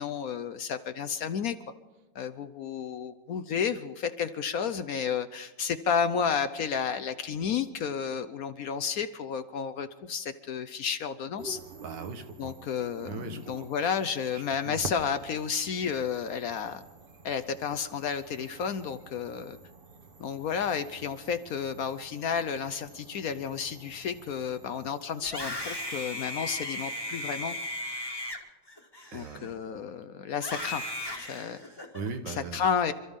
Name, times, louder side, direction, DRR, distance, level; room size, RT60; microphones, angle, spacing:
voice 1, 0.0-1.5 2.1-11.6 12.4-16.8 17.2-19.6 20.2-27.6 29.1-30.8 31.2-31.6 32.3-32.9, left 7 dB, 65° left, 11 dB, 1.0 m, -31 dB
sound 1, 11.4-26.7, right 3 dB, 35° right, 1.2 m, -49 dB
voice 2, 11.8-12.5 13.0-13.9 14.3-14.9 29.1-29.5 29.9-30.0 31.3-32.9, right 4 dB, 75° right, 7 dB, 1.9 m, -41 dB
Screaming, 25.2-29.7 30.4-32.1, left 1 dB, 15° left, 1.4 m, -37 dB
28.0 x 13.5 x 3.6 m, 1.2 s
omnidirectional pair, 1.9 m